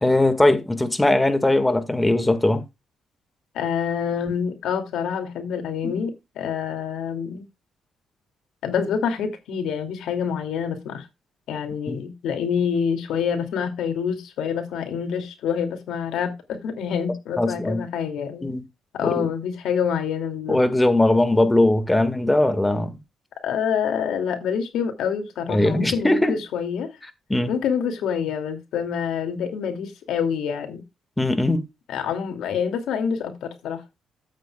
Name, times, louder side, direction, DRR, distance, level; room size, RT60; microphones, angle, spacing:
voice 1, 0.0-2.6 5.8-5.9 11.9-12.0 17.4-17.8 18.4-18.6 19.0-19.3 20.5-22.9 25.5-26.4 27.3-27.5 31.2-31.6, left 1 dB, 10° left, 1.9 m, -20 dB
voice 2, 3.5-7.4 8.6-11.1 11.5-18.5 18.9-20.6 23.4-26.9 27.5-30.8 31.9-33.8, left 7 dB, 80° left, 2.6 m, -27 dB
12.5 x 8.4 x 2.4 m
cardioid pair, 90°, 0 cm